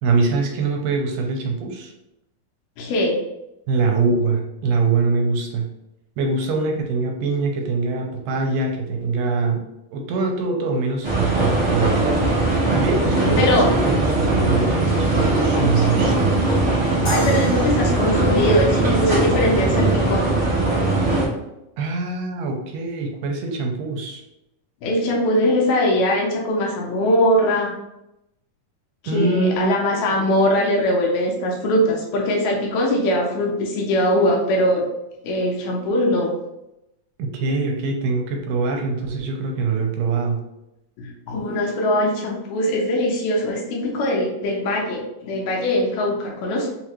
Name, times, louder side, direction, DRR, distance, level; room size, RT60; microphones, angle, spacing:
voice 1, 0.0-1.9 3.7-5.7 6.2-9.6 9.9-12.2 12.7-16.3 21.8-24.2 29.1-29.7 30.1-30.3 37.2-40.4, right 4 dB, 85° right, 2 dB, 2.3 m, -23 dB
voice 2, 2.8-3.2 13.2-13.7 16.8-20.3 24.8-27.7 29.0-34.9 35.2-36.3 41.0-46.7, left 1 dB, 75° left, -1 dB, 2.3 m, -21 dB
sound 1, 11.0-21.2, right 2 dB, 65° right, 0.8 m, -20 dB
sound 2, 17.0-20.1, right 1 dB, 50° left, 1.2 m, -34 dB
5.5 x 2.5 x 3.0 m, 0.89 s
omnidirectional pair, 3.9 m